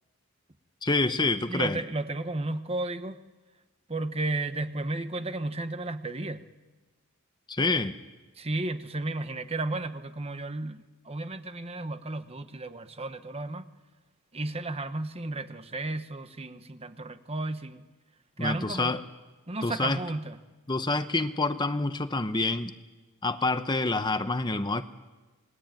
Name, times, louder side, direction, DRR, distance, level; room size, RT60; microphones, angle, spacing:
voice 1, 0.8-1.8 7.5-8.0 18.4-19.0 19.6-20.0 20.7-22.7 23.2-24.8, left 3 dB, 20° left, 10 dB, 0.9 m, -27 dB
voice 2, 1.5-3.2 3.9-6.4 8.4-13.7 14.3-17.9 18.4-19.0 19.5-20.4, right 2 dB, 30° right, 10 dB, 1.2 m, -33 dB
28.5 x 21.5 x 9.1 m, 1.2 s
head